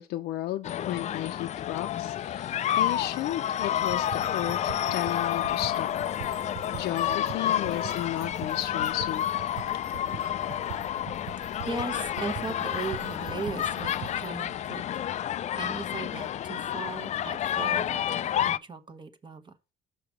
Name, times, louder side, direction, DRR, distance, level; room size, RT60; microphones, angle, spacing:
voice 1, 0.0-5.9 6.7-9.2, left 14 dB, 80° left, 0.7 m, -33 dB
sound 1, 0.6-18.6, left 11 dB, 45° left, 0.4 m, -30 dB
sound 2, 3.8-14.3, right 13 dB, 85° right, 0.5 m, -44 dB
voice 2, 11.7-14.8 15.2-19.5, right 4 dB, 30° right, 1.1 m, -38 dB
6.2 x 4.9 x 6.0 m
cardioid pair, 110°, 17 cm